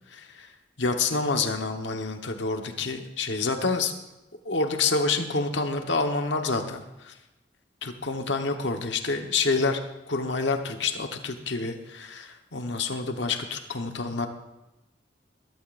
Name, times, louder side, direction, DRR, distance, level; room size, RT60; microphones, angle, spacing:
voice 1, 0.1-0.5 0.8-3.9 4.4-7.1 7.8-9.8 10.1-14.3, left 3 dB, 75° left, 5 dB, 1.3 m, -28 dB
21.0 x 12.0 x 2.6 m, 0.98 s
head